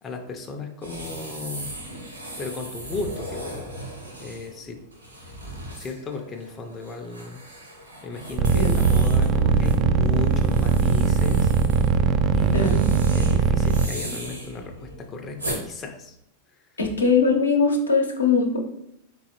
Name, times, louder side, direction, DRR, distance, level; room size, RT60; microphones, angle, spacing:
voice 1, 0.0-1.7 2.4-3.7 4.2-4.8 5.8-7.4 8.0-11.5 12.3-16.1, left 4 dB, 25° left, 3 dB, 0.5 m, -35 dB
sound 1, 0.8-15.6, right 1 dB, 80° right, 1.4 m, -37 dB
sound 2, 8.4-13.9, right 6 dB, 35° right, 0.3 m, -20 dB
sound 3, 8.8-13.9, right 5 dB, 60° right, 0.7 m, -30 dB
voice 2, 16.8-18.6, left 4 dB, 75° left, 1 dB, 0.8 m, -21 dB
4.0 x 3.8 x 2.9 m, 0.76 s
figure-of-eight pair, 90°, 0 cm